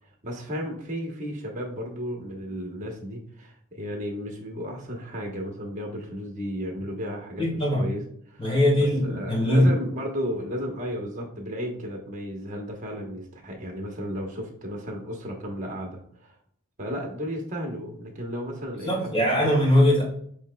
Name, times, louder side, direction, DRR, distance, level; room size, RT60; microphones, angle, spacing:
voice 1, 0.0-8.0 8.3-8.4 8.8-16.4 16.8-19.5, equal, 35° right, 2 dB, 1.0 m, -34 dB
voice 2, 7.4-7.9 8.4-9.7 18.8-20.0, left 1 dB, 25° left, -4 dB, 1.9 m, -21 dB
7.1 x 3.3 x 2.2 m, 0.66 s
head